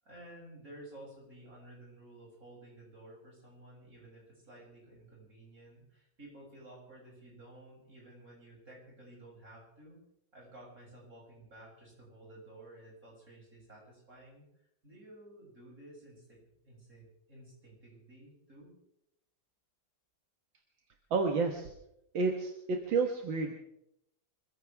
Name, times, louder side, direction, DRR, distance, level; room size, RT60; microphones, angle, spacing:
voice 1, 0.0-10.0 10.3-14.5 14.8-16.4 16.6-18.7, right 1 dB, 45° right, -4 dB, 8.0 m, -53 dB
voice 2, 21.1-21.7 22.1-23.6, right 4 dB, 80° right, 3 dB, 2.2 m, -30 dB
26.0 x 15.5 x 3.6 m, 0.79 s
omnidirectional pair, 2.1 m